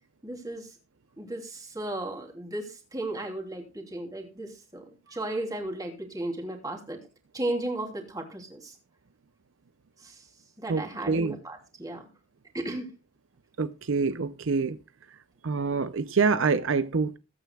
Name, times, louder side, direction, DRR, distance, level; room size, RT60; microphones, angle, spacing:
voice 1, 0.2-0.7 1.2-4.8 5.1-7.0 7.3-8.7 10.0-10.2 10.6-12.0 12.5-12.9, right 1 dB, 15° right, 3.1 m, -35 dB
voice 2, 10.7-11.4 13.6-14.8 15.4-17.2, right 4 dB, 65° right, 0.6 m, -26 dB
20.5 x 9.2 x 2.3 m
head